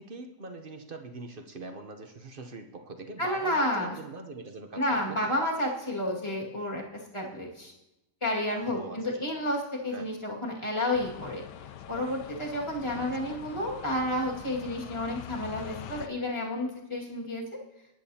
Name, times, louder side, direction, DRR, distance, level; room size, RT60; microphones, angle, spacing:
voice 1, 0.0-5.3 8.7-9.1 9.9-10.1 12.8-13.4, right 3 dB, 45° right, 6 dB, 0.7 m, -43 dB
voice 2, 3.2-4.0 4.8-7.7 8.2-11.4 11.9-17.4, left 1 dB, 15° left, -3 dB, 2.0 m, -31 dB
sound 1, 10.9-16.1, left 10 dB, 85° left, 1.2 m, -44 dB
21.5 x 10.0 x 2.8 m, 0.94 s
omnidirectional pair, 1.8 m